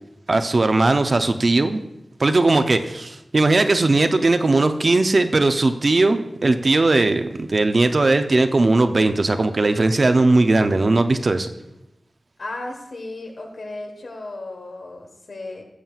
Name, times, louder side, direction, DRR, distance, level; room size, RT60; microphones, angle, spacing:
voice 1, 0.3-1.8 2.2-11.5, right 2 dB, 60° right, 9 dB, 0.5 m, -18 dB
voice 2, 12.4-15.6, left 2 dB, 80° left, 2 dB, 1.3 m, -35 dB
11.0 x 7.3 x 2.4 m, 0.90 s
cardioid pair, 40°, 0 cm